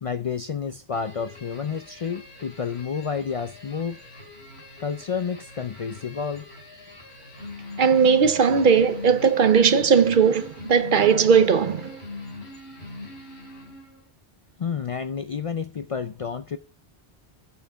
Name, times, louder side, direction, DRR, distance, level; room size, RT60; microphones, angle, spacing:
voice 1, 0.0-4.0 4.8-6.5 14.6-16.6, left 6 dB, 55° left, 0.3 m, -30 dB
nice bird, 0.9-14.1, left 2 dB, 75° left, 2.5 m, -42 dB
voice 2, 7.8-12.0, right 6 dB, 55° right, 0.8 m, -18 dB
8.7 x 5.7 x 5.0 m
omnidirectional pair, 1.1 m